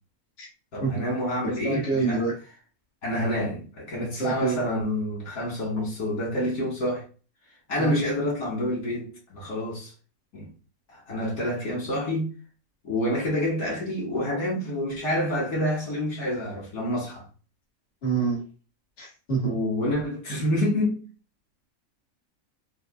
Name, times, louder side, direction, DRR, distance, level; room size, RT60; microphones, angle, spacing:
voice 1, 0.7-2.2 3.0-7.0 7.7-9.9 10.3-10.5 10.9-12.3 12.8-17.2 19.4-21.0, left 1 dB, 80° left, 2.4 m, -28 dB
voice 2, 1.6-2.3 4.1-4.7 7.8-7.9 18.0-18.4 19.0-19.5, right 4 dB, 45° left, 1.8 m, -27 dB
6.3 x 2.5 x 2.5 m
omnidirectional pair, 1.5 m